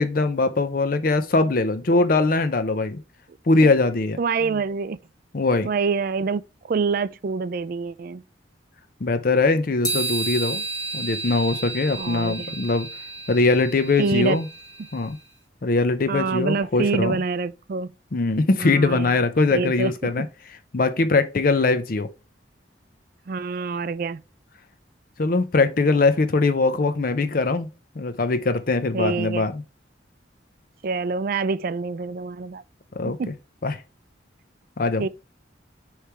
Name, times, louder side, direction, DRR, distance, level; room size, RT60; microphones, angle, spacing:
voice 1, 0.0-3.0 3.5-4.2 5.3-5.7 9.0-10.6 10.9-12.9 13.3-14.5 14.9-15.2 15.6-17.2 18.1-20.3 20.7-22.1 25.2-27.7 28.0-29.6 33.0-33.2 33.6-33.8 34.8-35.0, left 3 dB, 50° left, 0.5 m, -21 dB
voice 2, 4.2-5.0 5.6-6.4 6.7-8.2 12.0-12.5 14.0-14.4 16.1-17.9 18.6-19.2 19.5-20.3 23.3-24.2 28.9-29.4 30.8-32.6 33.2-33.3 35.0-35.1, right 4 dB, 50° right, 0.3 m, -26 dB
sound 1, 9.8-15.1, right 3 dB, 20° left, 3.1 m, -32 dB
6.7 x 3.2 x 4.6 m
head